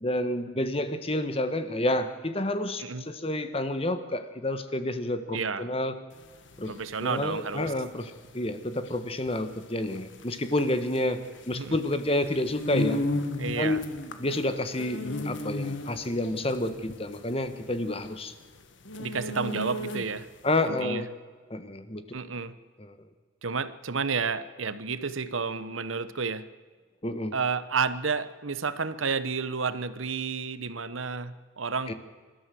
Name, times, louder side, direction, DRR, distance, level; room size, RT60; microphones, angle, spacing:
voice 1, 0.0-5.9 6.6-6.7 7.0-13.0 13.6-13.8 14.2-18.3 20.4-21.1 21.5-22.0 22.8-23.0 27.0-27.3 31.9-32.0, left 1 dB, 30° left, 10 dB, 1.4 m, -29 dB
voice 2, 5.3-5.7 6.7-7.7 11.5-11.8 13.4-13.8 19.0-20.3 20.6-21.0 22.1-22.5 23.4-26.5 27.3-31.9, right 5 dB, 85° right, 14 dB, 1.1 m, -31 dB
sound 1, 6.2-20.4, left 1 dB, 70° left, 1.6 m, -35 dB
27.5 x 13.0 x 7.7 m, 1.5 s
head